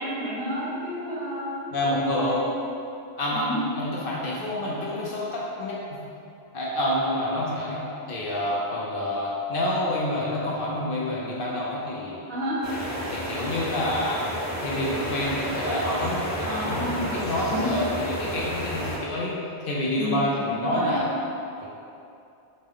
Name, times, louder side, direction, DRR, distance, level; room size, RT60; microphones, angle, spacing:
voice 1, 0.0-1.6 1.9-2.5 3.3-3.6 12.3-12.6 16.4-17.2 17.5-17.7 19.9-20.9, equal, 60° right, -8 dB, 1.3 m, -31 dB
voice 2, 1.7-2.4 3.2-3.5 3.7-6.0 6.5-12.2 13.1-14.2 14.6-19.4 19.6-21.1 21.6-21.7, left 1 dB, 60° left, -5 dB, 0.7 m, -28 dB
sound 1, 12.6-19.0, equal, 20° left, 0.6 m, -31 dB
4.9 x 2.2 x 3.6 m, 2.6 s
omnidirectional pair, 1.2 m